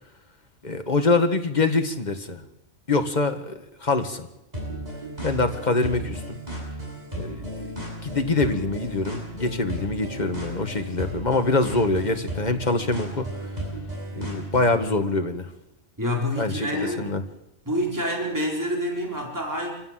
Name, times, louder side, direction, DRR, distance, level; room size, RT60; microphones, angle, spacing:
voice 1, 0.6-2.4 2.9-4.3 5.2-6.4 7.2-7.4 8.0-13.3 14.1-15.5 16.4-17.2, left 3 dB, 35° left, 6 dB, 2.0 m, -24 dB
sound 1, 4.5-14.9, equal, 35° right, 8.1 m, -35 dB
voice 2, 16.0-17.1 17.7-19.7, equal, 15° right, -1 dB, 4.7 m, -27 dB
26.0 x 16.5 x 7.7 m, 0.89 s
omnidirectional pair, 1.3 m